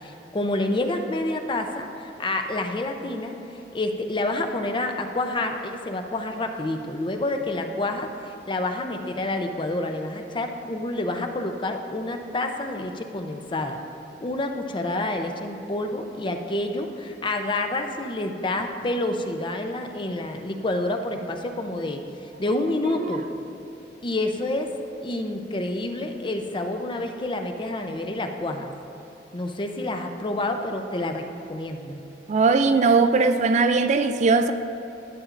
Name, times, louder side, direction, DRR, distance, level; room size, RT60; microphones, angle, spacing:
voice 1, 0.0-3.4 3.7-13.8 14.2-22.0 22.4-23.3 24.0-24.7 25.0-28.7 29.3-31.2 31.5-32.0, left 2 dB, 30° left, 0.5 m, -28 dB
voice 2, 32.3-34.5, right 4 dB, 40° right, 0.3 m, -19 dB
11.5 x 8.6 x 2.5 m
head